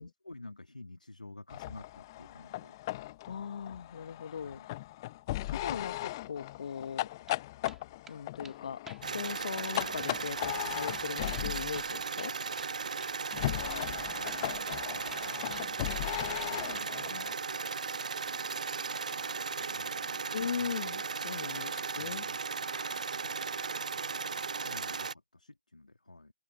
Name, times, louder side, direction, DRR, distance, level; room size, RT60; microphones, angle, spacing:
voice 1, 0.0-2.8 4.4-4.7 14.7-17.0 19.6-20.8 22.0-22.4 23.2-23.3 24.6-26.3, left 2 dB, 75° left, 2.5 m, -51 dB
sound 1, 1.5-11.8 13.3-17.3, left 17 dB, 30° left, 0.8 m, -38 dB
voice 2, 3.3-4.6 5.5-7.1 8.1-8.8 9.1-12.3 17.1-17.3 20.3-22.2 22.6-23.1, left 7 dB, 50° left, 1.1 m, -39 dB
sound 2, 7.0-7.4 7.7-8.2 8.4-8.6 8.9-9.4 9.7-9.8 10.1-10.2 10.5-10.6 10.9-12.7 13.0-13.2 13.4-13.5 13.9-14.8 15.1-16.1 16.4-16.9, right 5 dB, 5° right, 2.3 m, -52 dB
sound 3, 9.0-25.1, right 5 dB, 60° right, 0.5 m, -36 dB
open air
figure-of-eight pair, 135°, 4 cm